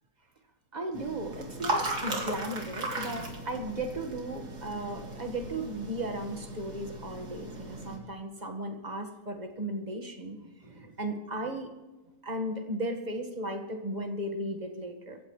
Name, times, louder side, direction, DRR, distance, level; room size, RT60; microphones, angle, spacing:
voice 1, 0.7-11.7 12.2-15.2, right 1 dB, 25° right, 4 dB, 1.6 m, -36 dB
sound 1, 0.9-8.0, right 2 dB, 75° right, 3.0 m, -37 dB
26.5 x 14.5 x 3.2 m, 1.1 s
omnidirectional pair, 1.8 m